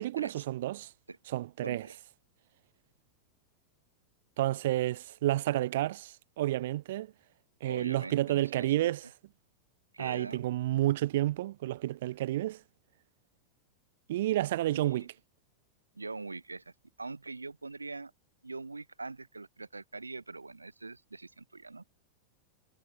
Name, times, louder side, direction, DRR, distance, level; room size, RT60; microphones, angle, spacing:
voice 1, 0.0-0.9 1.3-1.9 4.4-7.1 7.6-9.1 10.0-12.6 14.1-15.1, right 15 dB, 55° right, 1.3 m, -30 dB
voice 2, 1.6-2.0 7.6-8.9 9.9-10.4 14.7-15.1 16.0-16.7 17.0-18.1 18.4-21.8, right 3 dB, 80° right, 7.4 m, -42 dB
figure-of-eight pair, 90°, 0 cm